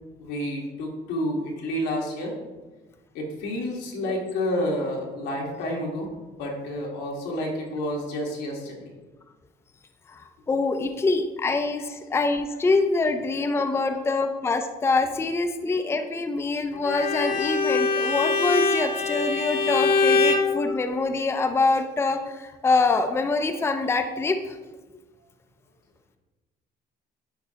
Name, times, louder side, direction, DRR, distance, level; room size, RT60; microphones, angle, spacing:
voice 1, 0.2-2.3 3.1-8.9 13.4-13.5 13.9-14.0, left 1 dB, 90° left, -1 dB, 1.6 m, -30 dB
voice 2, 10.5-24.5, left 3 dB, 15° left, 6 dB, 0.4 m, -25 dB
Bowed string instrument, 16.8-20.5, left 4 dB, 55° left, 1.0 m, -23 dB
10.0 x 4.5 x 2.8 m, 1.2 s
cardioid pair, 110°, 17 cm